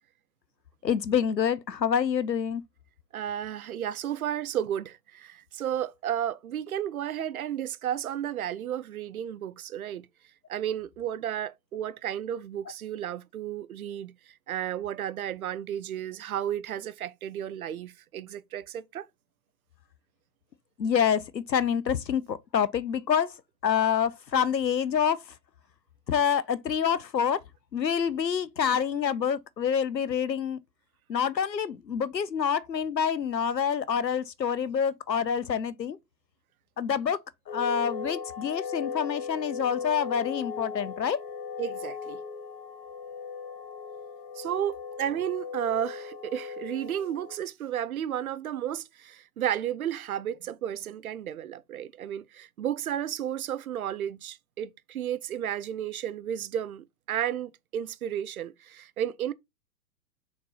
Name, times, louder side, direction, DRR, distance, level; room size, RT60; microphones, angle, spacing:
voice 1, 0.8-2.6 20.8-23.3 23.6-25.2 26.1-27.4 27.7-30.6 31.1-36.0 36.8-37.2 37.5-41.2, left 7 dB, 85° left, 0.7 m, -27 dB
voice 2, 3.1-10.1 10.5-19.1 41.6-42.2 44.4-59.3, right 10 dB, 60° right, 0.7 m, -33 dB
sound 1, 37.5-47.4, left 6 dB, 25° left, 0.9 m, -38 dB
5.9 x 4.1 x 3.9 m
figure-of-eight pair, 110°, 50 cm